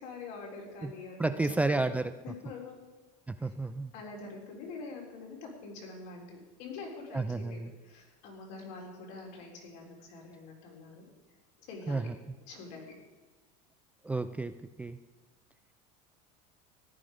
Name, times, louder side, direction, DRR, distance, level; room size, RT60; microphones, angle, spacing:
voice 1, 0.0-2.0 2.4-2.8 3.4-3.5 3.9-11.1 11.7-12.1 12.5-12.9, left 3 dB, 70° left, -1 dB, 3.9 m, -45 dB
voice 2, 1.2-2.1 3.3-3.9 7.1-7.7 11.9-12.1 14.0-14.5 14.8-15.0, right 3 dB, 10° right, 10 dB, 0.3 m, -31 dB
14.5 x 10.5 x 5.0 m, 1.3 s
cardioid pair, 145°, 19 cm